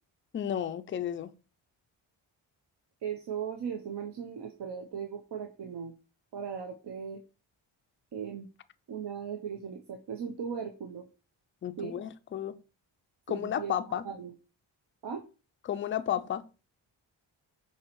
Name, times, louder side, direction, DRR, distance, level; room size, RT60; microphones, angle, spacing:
voice 1, 0.3-1.3 11.6-12.6 13.3-14.1 15.7-16.4, left 10 dB, 30° left, 0.3 m, -32 dB
voice 2, 3.0-5.9 6.3-7.2 8.1-8.5 8.9-11.1 11.8-11.9 13.3-13.7 14.0-14.3 15.0-15.2, right 7 dB, 55° right, 0.7 m, -38 dB
5.6 x 2.9 x 3.0 m
supercardioid pair, 55°, 48 cm